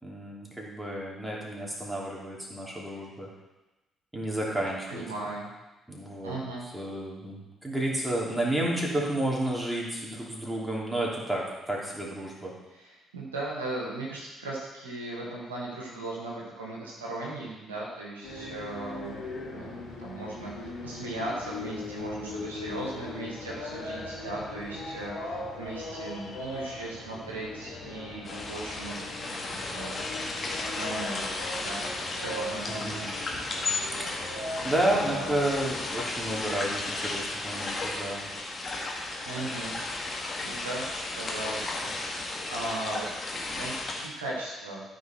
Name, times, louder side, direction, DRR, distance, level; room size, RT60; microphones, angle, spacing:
voice 1, 0.0-3.3 4.1-5.0 5.9-6.4 6.7-12.5 32.2-33.0 34.0-38.3, right 1 dB, 5° right, -4 dB, 3.2 m, -31 dB
voice 2, 4.9-5.5 6.2-6.7 12.7-19.2 19.5-28.9 29.2-30.0 30.8-33.1 34.9-35.3 39.2-39.8 40.4-40.9 41.2-44.8, right 2 dB, 80° right, -4 dB, 1.6 m, -38 dB
sound 1, 18.2-36.1, left 2 dB, 70° left, 2.0 m, -39 dB
sound 2, 28.2-44.1, left 2 dB, 40° left, 1.9 m, -34 dB
13.0 x 5.3 x 4.5 m, 1.1 s
figure-of-eight pair, 45°, 0 cm